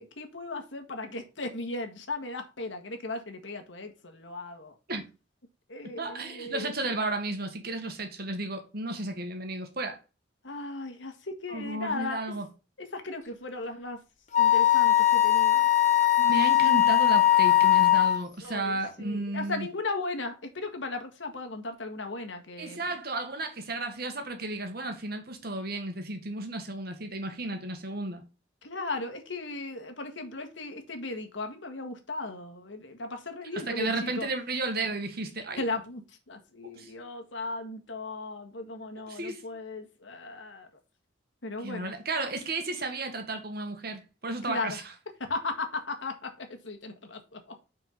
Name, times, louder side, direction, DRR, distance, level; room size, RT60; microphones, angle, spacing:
voice 1, 0.0-4.7 5.7-6.7 10.4-12.2 12.8-14.0 14.4-15.7 18.4-22.9 28.6-34.3 35.6-36.0 36.3-40.7 41.4-41.9 44.5-44.8 45.2-47.4, left 2 dB, 75° left, 1.7 m, -36 dB
voice 2, 6.0-10.0 11.5-12.5 16.2-19.7 22.6-28.2 33.5-35.6 36.6-36.9 39.1-39.4 41.6-44.8, right 2 dB, 55° right, 1.7 m, -33 dB
Wind instrument woodwind instrument, 14.3-18.2, left 12 dB, 40° left, 0.9 m, -20 dB
6.1 x 4.6 x 5.8 m
head